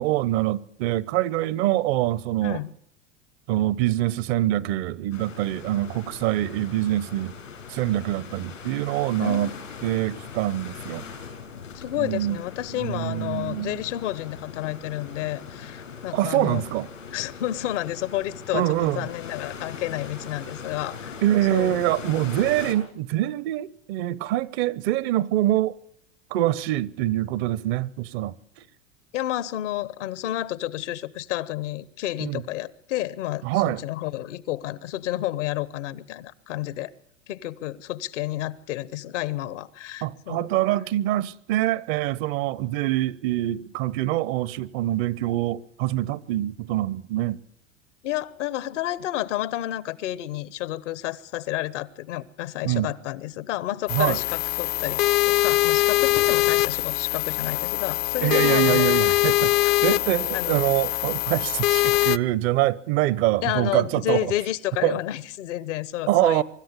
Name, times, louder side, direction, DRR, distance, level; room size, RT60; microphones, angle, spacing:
voice 1, 0.0-2.6 3.5-7.3 7.7-9.5 9.8-11.0 12.0-12.4 12.8-13.8 16.1-16.9 18.5-19.1 21.2-25.8 26.3-28.3 32.2-32.4 33.4-33.8 40.0-47.4 52.6-52.9 53.9-54.2 58.2-59.5 59.8-64.3 64.8-65.0 66.1-66.4, right 15 dB, 55° right, 0.9 m, -25 dB
voice 2, 2.4-2.7 9.2-10.2 11.7-16.7 17.1-21.1 21.5-21.8 29.1-36.9 37.3-40.5 48.0-58.9 59.6-60.1 60.3-60.6 63.4-66.4, left 14 dB, 70° left, 1.1 m, -30 dB
sound 1, 5.1-22.8, left 6 dB, 90° left, 6.4 m, -40 dB
sound 2, 53.9-62.2, left 18 dB, 55° left, 0.8 m, -22 dB
24.5 x 13.0 x 8.3 m
hypercardioid pair, 95°, 37 cm